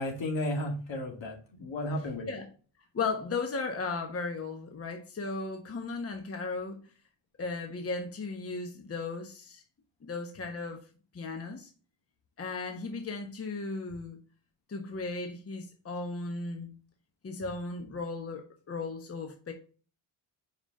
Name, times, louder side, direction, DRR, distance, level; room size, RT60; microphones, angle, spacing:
voice 1, 0.0-2.4, left 1 dB, 70° left, 1 dB, 2.3 m, -33 dB
voice 2, 2.9-6.8 7.4-9.6 10.0-10.8 11.1-11.7 12.4-14.2 14.7-16.7 17.2-19.5, left 4 dB, 30° left, 4 dB, 1.1 m, -36 dB
5.3 x 4.8 x 3.6 m, 0.38 s
cardioid pair, 100°, 46 cm